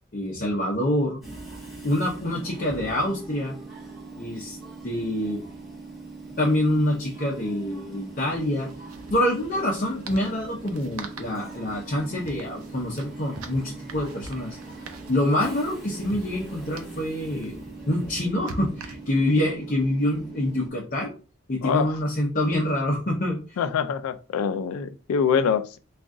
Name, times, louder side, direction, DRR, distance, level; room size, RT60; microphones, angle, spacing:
voice 1, 0.1-1.2 1.8-3.5 4.2-4.6 4.8-5.4 6.4-8.7 9.1-14.6 15.1-21.1 21.5-23.6, left 1 dB, 40° left, 0.7 m, -26 dB
Train / Subway metro underground, 1.2-20.7, right 3 dB, ahead, 1.1 m, -41 dB
sound 1, 6.3-6.4 6.6-6.7 8.2-19.4, right 2 dB, 85° right, 0.6 m, -44 dB
voice 2, 21.6-21.9 23.6-25.8, left 6 dB, 80° left, 0.3 m, -24 dB
3.8 x 2.4 x 3.6 m
head